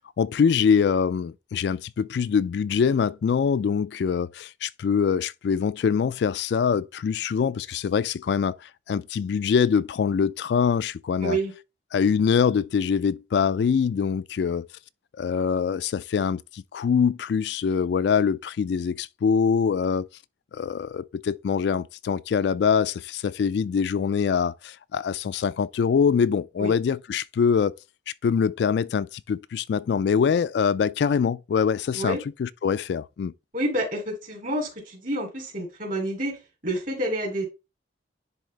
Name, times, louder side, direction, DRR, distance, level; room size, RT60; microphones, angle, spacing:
voice 1, 0.2-8.6 8.9-11.4 11.9-14.7 15.2-20.1 20.5-27.7 28.2-33.3, left 6 dB, 65° left, 0.3 m, -24 dB
voice 2, 11.2-11.5 26.6-26.7 31.9-32.2 33.5-36.4 36.6-37.5, right 1 dB, 45° right, 2.8 m, -28 dB
10.5 x 3.5 x 3.3 m
head